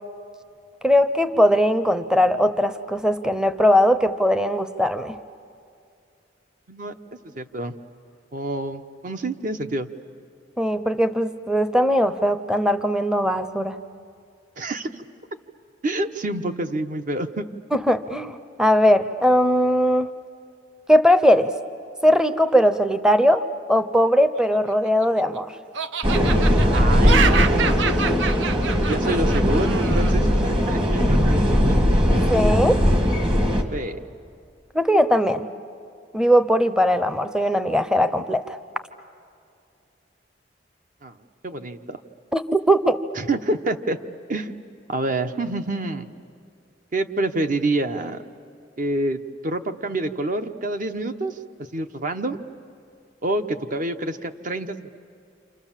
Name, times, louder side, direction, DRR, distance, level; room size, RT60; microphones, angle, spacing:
voice 1, 0.8-5.2 10.6-13.8 17.7-20.1 20.9-21.5 22.0-25.5 32.3-32.9 34.7-35.5 36.1-38.6 42.3-43.0, equal, 5° right, 11 dB, 0.7 m, -19 dB
voice 2, 7.2-7.7 8.3-9.9 14.6-15.0 15.8-17.5 26.6-27.9 28.9-31.9 33.7-34.0 41.0-41.2 41.4-42.0 43.1-44.0 44.3-46.1 46.9-48.2 48.8-51.4 51.7-52.4 53.2-55.0, right 2 dB, 45° right, 8 dB, 1.0 m, -27 dB
Laughter, 24.5-25.4 25.7-30.1, right 6 dB, 75° right, 0.7 m, -27 dB
sound 1, 26.0-33.6, equal, 30° right, 1.7 m, -19 dB
28.5 x 27.5 x 7.4 m, 2.4 s
head